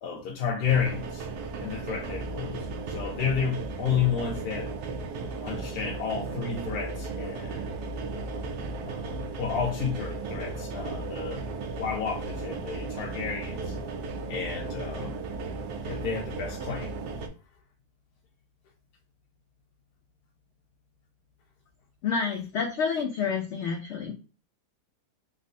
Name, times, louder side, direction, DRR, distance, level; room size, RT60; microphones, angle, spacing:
voice 1, 0.0-1.3 1.6-4.7 5.4-7.7 8.8-11.4 11.8-13.7 14.3-15.2 15.8-16.9, left 7 dB, 85° left, 1.2 m, -31 dB
sound 1, 0.6-17.3, right 3 dB, 85° right, 1.1 m, -35 dB
voice 2, 22.0-24.1, left 5 dB, 70° left, 0.7 m, -29 dB
3.4 x 2.4 x 2.5 m
omnidirectional pair, 1.6 m